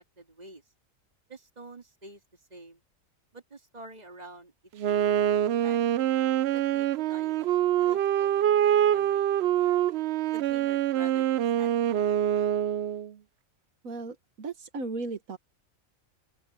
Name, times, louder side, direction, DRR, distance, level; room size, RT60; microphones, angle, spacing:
voice 1, 0.2-0.6 1.3-2.2 2.5-2.8 3.3-4.5 5.6-6.0 6.5-9.8 10.3-12.0, right 2 dB, 30° right, 2.5 m, -48 dB
Wind instrument woodwind instrument, 4.8-13.1, right 11 dB, 65° right, 0.7 m, -25 dB
voice 2, 13.8-15.4, right 3 dB, 85° right, 1.9 m, -36 dB
open air
omnidirectional pair, 1.4 m